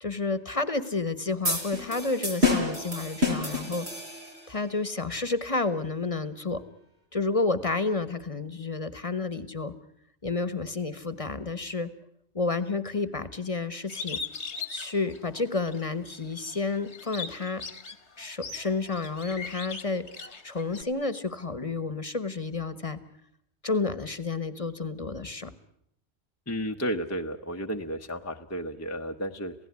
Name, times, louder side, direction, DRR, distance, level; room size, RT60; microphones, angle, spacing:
voice 1, 0.0-3.9 4.5-6.6 7.1-9.7 10.2-11.9 12.3-14.2 14.7-17.6 18.2-20.1 20.4-23.0 23.6-25.5, left 3 dB, 30° left, 14 dB, 1.3 m, -30 dB
sound 1, 1.4-4.5, left 3 dB, 70° right, 5.1 m, -28 dB
Bird, 13.9-15.9 16.3-20.8, left 5 dB, 90° left, 2.0 m, -39 dB
voice 2, 26.5-29.5, equal, 15° left, 4 dB, 0.9 m, -32 dB
28.0 x 17.0 x 9.6 m, 0.76 s
omnidirectional pair, 1.1 m